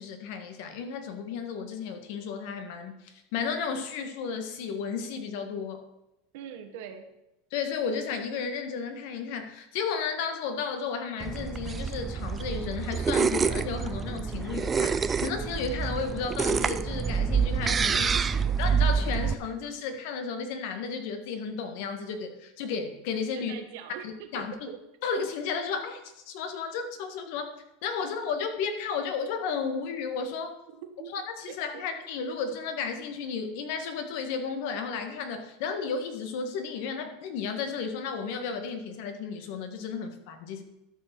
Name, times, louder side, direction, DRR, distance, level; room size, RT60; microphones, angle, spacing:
voice 1, 0.0-5.8 7.5-18.1 18.6-23.5 24.0-24.7 25.0-27.5 27.8-30.5 31.1-40.6, left 5 dB, 65° left, 7 dB, 1.7 m, -33 dB
voice 2, 6.3-7.1 17.9-18.6 23.3-24.8 31.0-31.1 31.5-31.6, right 9 dB, 70° right, 6 dB, 1.7 m, -42 dB
sound 1, 11.2-19.3, right 6 dB, 20° right, 0.4 m, -27 dB
12.0 x 5.9 x 6.1 m, 0.90 s
supercardioid pair, 140°, 0 cm